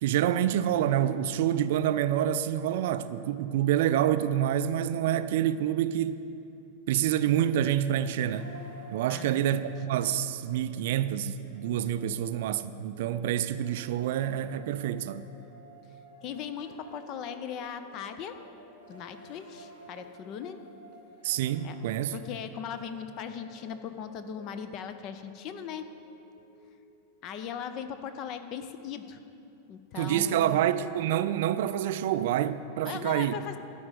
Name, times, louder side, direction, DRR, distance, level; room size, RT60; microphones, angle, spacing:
voice 1, 0.0-6.2 6.9-8.5 8.9-15.3 21.2-22.1 30.0-33.3, right 11 dB, 55° right, 0.3 m, -27 dB
sound 1, 8.3-27.4, right 1 dB, 75° left, 2.6 m, -53 dB
voice 2, 9.1-9.7 16.2-18.4 18.9-20.6 21.6-21.8 22.1-26.0 27.2-29.2 29.7-30.6 32.8-33.6, left 8 dB, 40° left, 0.6 m, -39 dB
11.5 x 5.1 x 8.3 m
figure-of-eight pair, 90°, 0 cm